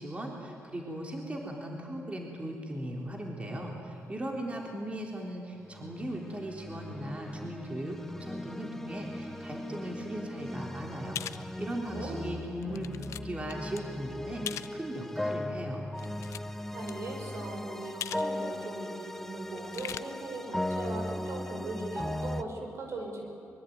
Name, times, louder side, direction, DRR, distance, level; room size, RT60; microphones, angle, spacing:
voice 1, 0.0-15.9, right 1 dB, 25° right, 1 dB, 3.6 m, -38 dB
sound 1, 5.6-22.4, left 1 dB, 5° left, 0.9 m, -38 dB
sound 2, 11.2-11.4 12.0-12.1 12.6-13.2 13.5-13.8 14.5-14.7 15.9-16.6 16.9-17.0 18.0-18.3 18.6-18.7 19.5-20.0, left 10 dB, 85° left, 0.7 m, -39 dB
voice 2, 16.7-23.3, right 2 dB, 65° right, 2 dB, 5.8 m, -39 dB
23.5 x 23.0 x 9.5 m, 2.9 s
cardioid pair, 85°, 5 cm